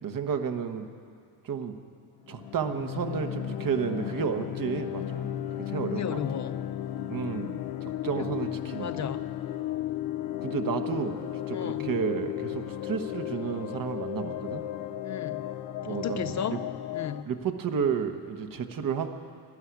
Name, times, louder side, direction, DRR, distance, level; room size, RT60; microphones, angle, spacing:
voice 1, 0.0-0.9 1.4-1.7 2.3-5.3 5.7-6.2 7.1-9.1 10.4-14.7 15.8-16.6 17.2-19.1, right 7 dB, 50° right, 7 dB, 1.2 m, -32 dB
sound 1, 2.2-17.2, left 12 dB, 85° left, 0.7 m, -34 dB
voice 2, 5.9-6.6 8.2-8.3 8.8-9.2 11.5-11.9 15.0-15.4 15.9-16.6 16.9-17.3, left 8 dB, 40° left, 11 dB, 0.6 m, -34 dB
12.5 x 11.5 x 9.4 m, 2.5 s
cardioid pair, 90°, 42 cm